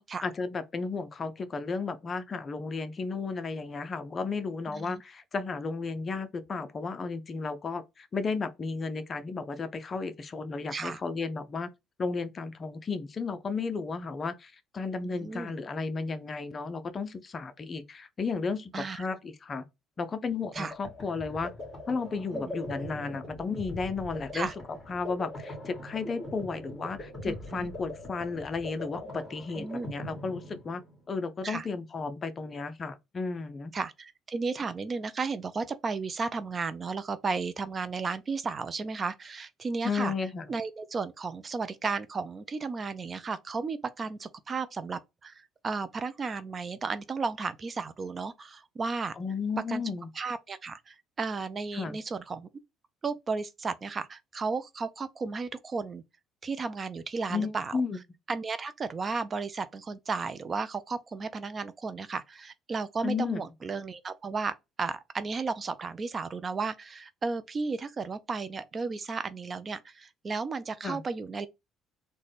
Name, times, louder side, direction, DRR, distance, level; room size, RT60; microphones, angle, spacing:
voice 1, 0.2-11.7 12.0-19.6 20.0-21.5 21.9-24.5 24.9-30.8 31.1-33.7 39.8-40.5 49.2-50.1 51.7-52.0 57.3-58.0 63.0-63.4 70.8-71.0, left 4 dB, 30° left, 0.5 m, -33 dB
voice 2, 15.1-15.5 18.7-19.1 20.5-20.7 22.3-22.5 24.3-24.5 27.2-27.7 29.6-29.9 31.4-31.7 33.7-40.1 40.5-49.2 49.7-49.8 50.2-52.5 53.0-56.0 56.4-57.7 58.3-71.5, right 4 dB, 30° right, 0.3 m, -34 dB
sound 1, 20.3-31.1, left 1 dB, 15° left, 2.0 m, -42 dB
3.9 x 2.1 x 3.3 m
cardioid pair, 115°, 0 cm